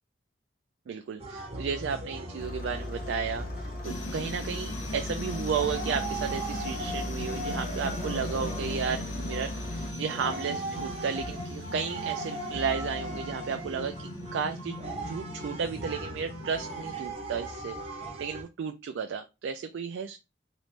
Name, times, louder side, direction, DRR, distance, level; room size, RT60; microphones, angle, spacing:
voice 1, 0.9-14.8 15.1-20.2, right 6 dB, 80° right, 6 dB, 0.3 m, -33 dB
sound 1, 1.2-18.4, right 2 dB, 35° right, 0.7 m, -39 dB
Engine starting, 2.4-9.9, left 1 dB, 45° left, 0.5 m, -38 dB
sound 2, 3.8-17.1, left 1 dB, 90° left, 0.9 m, -40 dB
3.0 x 2.5 x 3.2 m, 0.25 s
head